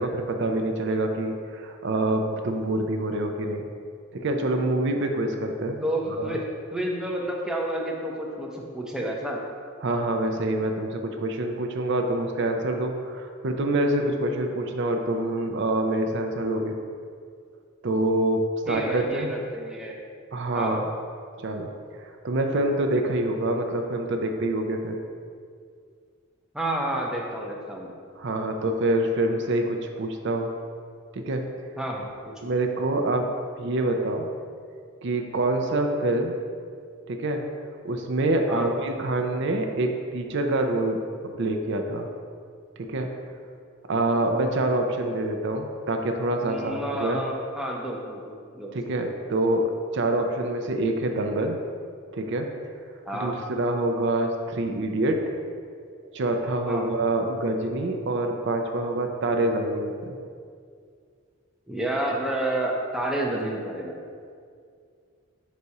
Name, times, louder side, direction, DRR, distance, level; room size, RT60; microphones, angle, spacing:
voice 1, 0.0-3.7 4.1-5.8 6.2-6.4 9.8-16.8 17.8-19.3 20.3-20.8 21.4-25.0 28.2-30.5 31.1-31.4 32.4-33.3 33.6-34.3 35.0-36.3 37.1-37.4 37.8-41.0 41.4-42.1 42.8-43.1 43.9-47.2 48.7-51.6 52.1-52.5 53.1-55.2 56.1-60.1, right 1 dB, 55° right, 4 dB, 0.5 m, -26 dB
voice 2, 5.8-9.4 18.7-20.0 20.5-20.8 26.5-27.9 31.8-32.1 38.5-38.7 46.4-48.7 53.1-53.4 56.6-56.9 61.7-64.0, right 1 dB, 5° right, -2 dB, 0.5 m, -30 dB
5.4 x 4.1 x 4.7 m, 2.2 s
head